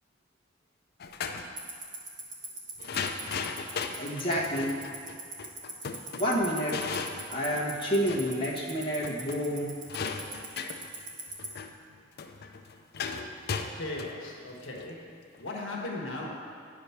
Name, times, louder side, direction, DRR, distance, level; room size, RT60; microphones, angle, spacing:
sound 1, 1.0-1.5 2.8-8.4 8.7-8.8 9.0-15.5, left 5 dB, 55° left, 0.5 m, -37 dB
Tick-tock, 1.6-11.5, right 3 dB, 45° right, 1.3 m, -38 dB
voice 1, 4.0-4.8 6.2-6.9 7.3-9.8, equal, 25° left, -6 dB, 1.3 m, -29 dB
voice 2, 13.7-16.4, left 2 dB, 80° left, -1 dB, 1.3 m, -38 dB
9.6 x 5.0 x 5.8 m, 2.2 s
head